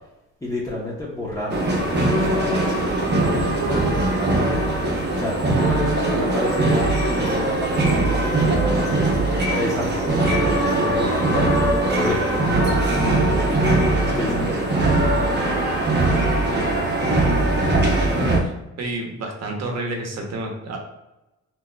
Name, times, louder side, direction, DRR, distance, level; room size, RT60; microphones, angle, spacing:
voice 1, 0.4-3.5 3.8-4.4 5.1-9.0 9.5-15.7, left 1 dB, 10° left, -6 dB, 1.0 m, -31 dB
sound 1, 1.5-18.4, right 2 dB, 35° right, 0.9 m, -20 dB
voice 2, 18.8-20.8, right 2 dB, 60° right, 2 dB, 1.0 m, -30 dB
5.8 x 2.7 x 2.3 m, 0.98 s
cardioid pair, 90°, 30 cm